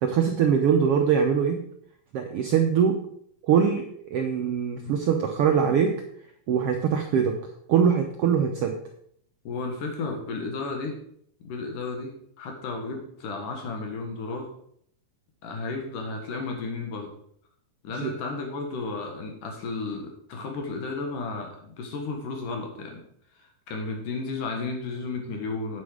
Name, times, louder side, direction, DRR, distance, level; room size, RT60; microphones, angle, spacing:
voice 1, 0.0-1.6 2.1-3.0 3.4-5.9 6.5-7.4 7.7-8.7 18.0-18.1, right 7 dB, 75° right, 4 dB, 1.3 m, -22 dB
voice 2, 9.4-11.0 11.4-12.1 12.4-14.5 15.4-17.1 17.8-23.0 23.4-25.8, left 3 dB, 85° left, 3 dB, 3.1 m, -33 dB
8.5 x 8.4 x 4.9 m, 0.67 s
omnidirectional pair, 3.6 m